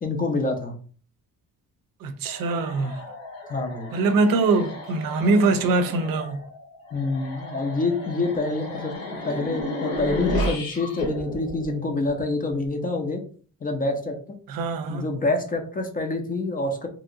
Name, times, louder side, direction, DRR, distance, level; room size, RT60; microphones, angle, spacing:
voice 1, 0.0-0.7 3.5-3.9 6.9-9.0 9.2-13.2 13.6-14.2 14.9-16.9, left 2 dB, 25° left, 0.4 m, -26 dB
voice 2, 2.0-3.0 3.9-6.4 14.5-15.1, right 3 dB, 75° right, 0.5 m, -23 dB
sound 1, 2.3-12.5, left 1 dB, 85° left, 1.2 m, -34 dB
2.9 x 2.7 x 2.5 m
cardioid pair, 165°, 34 cm